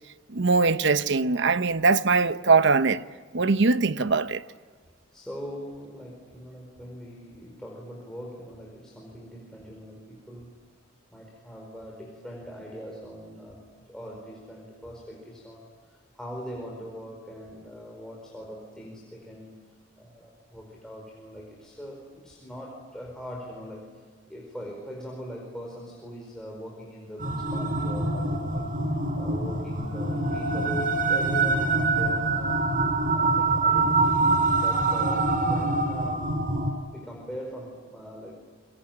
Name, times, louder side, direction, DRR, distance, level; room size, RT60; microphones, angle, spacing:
voice 1, 0.3-3.0 3.3-4.4, right 4 dB, 65° right, 0.9 m, -21 dB
voice 2, 5.1-10.6 11.1-19.7 20.0-28.7 29.1-32.7 33.0-36.3 36.9-38.4, equal, 5° left, 4.6 m, -41 dB
sound 1, 27.2-36.7, right 3 dB, 45° right, 4.2 m, -25 dB
27.0 x 23.0 x 9.0 m
head